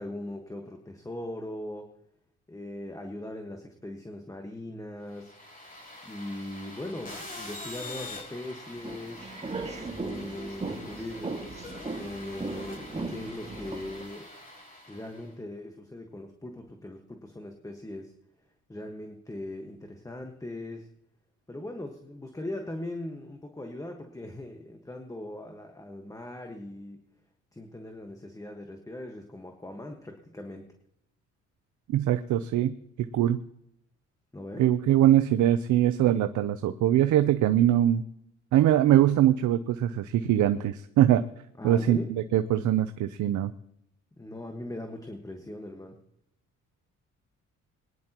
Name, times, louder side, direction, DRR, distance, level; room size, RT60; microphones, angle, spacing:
voice 1, 0.0-1.9 2.5-5.3 6.0-9.3 9.9-11.4 11.9-14.3 14.9-18.1 18.7-20.9 21.5-27.0 27.5-30.7 34.3-34.7 41.6-42.1 44.2-46.0, left 1 dB, 10° left, 4 dB, 1.5 m, -40 dB
sound 1, 5.1-15.3, left 2 dB, 30° left, 5.2 m, -45 dB
sound 2, 8.8-14.0, right 3 dB, 20° right, 2.0 m, -37 dB
voice 2, 31.9-32.8 33.1-33.4 34.6-38.0 38.5-41.2 41.6-43.5, right 12 dB, 75° right, 10 dB, 0.7 m, -22 dB
21.5 x 10.5 x 3.0 m, 0.76 s
cardioid pair, 90°, 30 cm